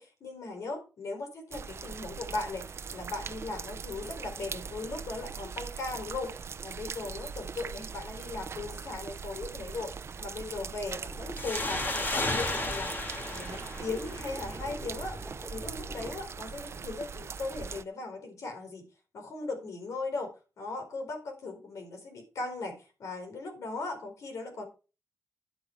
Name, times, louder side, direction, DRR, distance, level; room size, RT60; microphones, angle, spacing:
voice 1, 0.0-9.9 10.2-12.9 13.3-15.2 15.5-18.8 19.1-24.6, left 3 dB, 80° left, 4 dB, 4.3 m, -38 dB
sound 1, 1.5-17.8, right 6 dB, 55° right, 0.7 m, -41 dB
sound 2, 10.9-16.1, equal, ahead, 2.9 m, -46 dB
sound 3, 11.4-14.7, left 2 dB, 40° left, 2.9 m, -33 dB
10.5 x 7.8 x 4.6 m, 0.33 s
cardioid pair, 85°, 5 cm